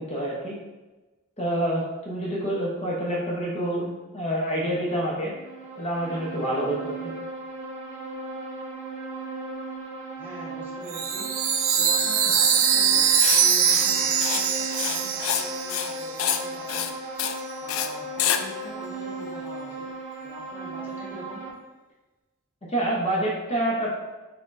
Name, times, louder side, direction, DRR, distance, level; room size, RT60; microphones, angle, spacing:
voice 1, 0.1-0.5 1.4-5.3 5.8-7.1 22.7-23.9, right 1 dB, 30° left, -4 dB, 0.7 m, -27 dB
sound 1, 5.2-21.5, right 2 dB, 35° right, 1.1 m, -37 dB
voice 2, 10.2-11.3 11.8-14.5 14.7-16.9 17.6-19.8 20.2-21.4, equal, 10° right, -7 dB, 1.3 m, -42 dB
Chime, 10.9-16.4, right 7 dB, 75° right, 0.4 m, -23 dB
Writing, 13.2-13.4 13.7-13.9 14.2-14.4 14.7-15.4 15.7-15.9 16.2-16.4 16.7-16.9 17.2-17.4 17.7-17.9 18.2-18.4, left 9 dB, 75° left, 0.3 m, -27 dB
4.3 x 4.1 x 2.5 m, 1.2 s
head